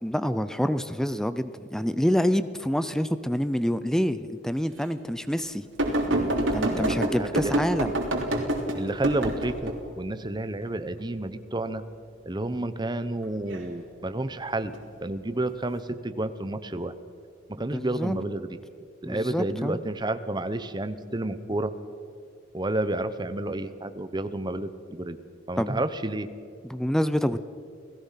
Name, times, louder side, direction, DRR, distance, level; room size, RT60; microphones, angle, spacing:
voice 1, 0.0-5.6 6.5-7.9 17.6-18.2 19.0-19.8 25.6-25.7 26.7-27.4, equal, 5° left, 13 dB, 0.5 m, -27 dB
sound 1, 5.8-9.7 13.2-13.6 14.7-14.8, right 1 dB, 85° right, 3.3 m, -26 dB
voice 2, 6.7-7.5 8.7-11.8 12.3-14.7 15.0-16.9 17.5-18.5 19.0-21.7 22.5-25.2 25.5-26.3, right 1 dB, 20° right, 11 dB, 0.9 m, -30 dB
29.0 x 17.0 x 5.8 m, 2.4 s
head